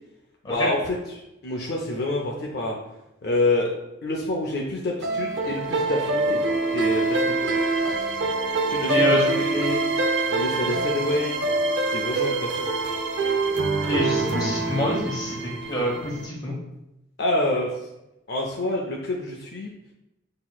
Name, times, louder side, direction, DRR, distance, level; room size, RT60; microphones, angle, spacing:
voice 1, 0.5-2.8 3.2-6.4 6.7-7.6 8.7-9.8 10.3-11.4 11.9-12.7 17.2-17.7 18.3-19.7, left 2 dB, 50° left, -1 dB, 0.5 m, -27 dB
sound 1, 5.0-16.3, right 2 dB, 60° right, 0.5 m, -25 dB
voice 2, 8.9-9.5 13.9-16.6, equal, 20° left, -3 dB, 1.0 m, -27 dB
5.9 x 2.9 x 2.3 m, 0.90 s
head